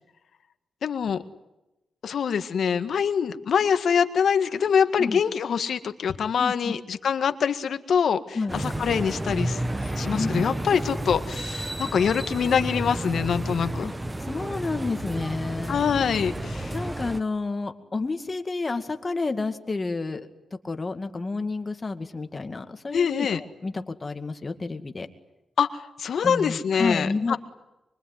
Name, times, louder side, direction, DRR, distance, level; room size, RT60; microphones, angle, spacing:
voice 1, 0.8-1.2 2.0-13.9 15.7-16.7 22.9-23.4 25.6-27.4, left 7 dB, 70° left, 9 dB, 1.8 m, -24 dB
voice 2, 6.4-6.7 8.3-8.6 10.1-10.3 13.8-13.9 14.2-15.8 16.7-20.3 20.6-25.1 26.2-27.4, left 3 dB, 30° left, 7 dB, 2.2 m, -30 dB
sound 1, 8.5-17.2, right 1 dB, 15° right, 1.1 m, -31 dB
25.0 x 23.5 x 9.6 m, 0.95 s
cardioid pair, 105°, 0 cm